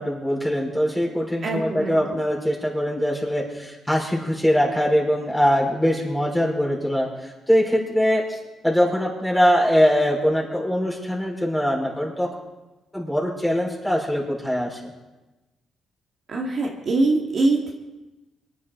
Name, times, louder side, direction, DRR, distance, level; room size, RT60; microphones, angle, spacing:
voice 1, 0.0-8.4 8.6-12.3 12.9-14.9, equal, 5° left, -3 dB, 4.8 m, -22 dB
voice 2, 1.4-2.0 16.3-17.7, right 2 dB, 50° right, -1 dB, 2.0 m, -23 dB
23.0 x 10.0 x 3.9 m, 1.1 s
cardioid pair, 90°, 0 cm